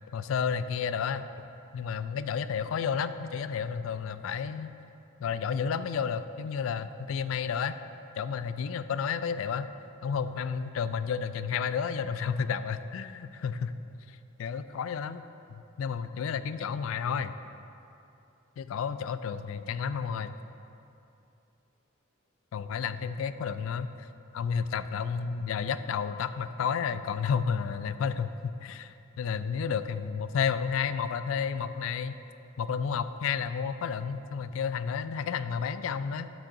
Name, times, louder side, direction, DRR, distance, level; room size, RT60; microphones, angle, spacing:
voice 1, 0.1-1.3 1.7-4.7 5.2-7.7 8.2-9.7 10.0-13.7 14.1-15.2 15.6-17.3 18.6-20.3 22.5-24.1 24.3-32.2 32.6-36.3, left 6 dB, 80° left, 12 dB, 0.3 m, -31 dB
13.0 x 6.2 x 2.6 m, 2.8 s
head